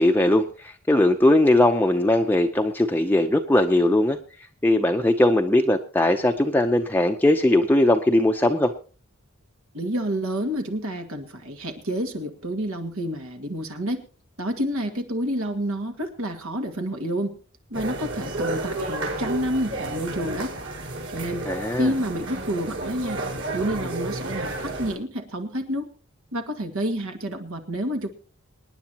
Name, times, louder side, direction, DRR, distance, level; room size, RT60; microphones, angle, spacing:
voice 1, 0.0-4.2 4.6-8.7 21.5-21.9, left 1 dB, 10° left, 4 dB, 0.6 m, -20 dB
voice 2, 9.7-14.0 14.4-17.4 17.7-20.5 21.1-23.2 23.5-25.9 26.3-28.1, equal, 80° right, 6 dB, 2.0 m, -29 dB
sound 1, 17.7-24.9, right 2 dB, 65° right, 5.1 m, -31 dB
26.0 x 9.7 x 2.9 m, 0.37 s
head